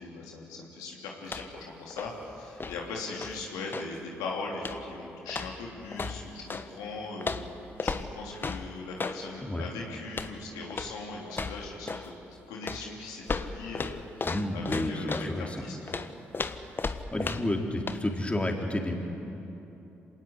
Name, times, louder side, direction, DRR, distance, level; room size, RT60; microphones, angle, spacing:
voice 1, 0.0-7.5 7.8-16.0, left 3 dB, 75° left, -1 dB, 3.1 m, -40 dB
sound 1, 1.2-1.7 1.9-4.0 4.6-4.9 5.3-6.7 7.2-9.2 10.1-10.4 10.7-11.0 11.3-12.1 12.6-15.3 15.9-17.6 17.9-18.0, left 4 dB, 35° left, 1.3 m, -35 dB
voice 2, 14.2-15.6 17.1-18.9, left 1 dB, 20° left, 1 dB, 3.9 m, -30 dB
26.5 x 19.0 x 8.2 m, 2.9 s
hypercardioid pair, 45°, 6 cm